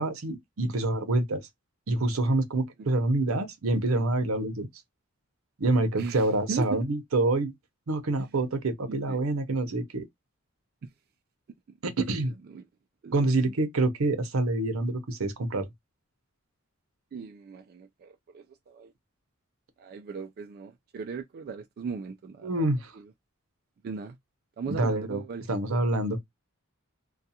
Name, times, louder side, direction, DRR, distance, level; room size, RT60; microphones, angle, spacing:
voice 1, 0.0-1.4 1.9-4.7 5.6-7.5 7.9-10.0 11.8-12.3 13.1-15.7 22.4-22.9 24.7-25.2 25.5-26.2, right 2 dB, 75° right, 0.7 m, -26 dB
voice 2, 6.0-6.8 8.2-8.3 9.1-9.2 10.8-10.9 12.5-12.6 13.0-13.5 17.1-18.9 19.8-22.5 22.9-23.1 23.8-24.2 24.6-25.6, right 5 dB, 45° right, 0.3 m, -38 dB
2.4 x 2.3 x 2.7 m
head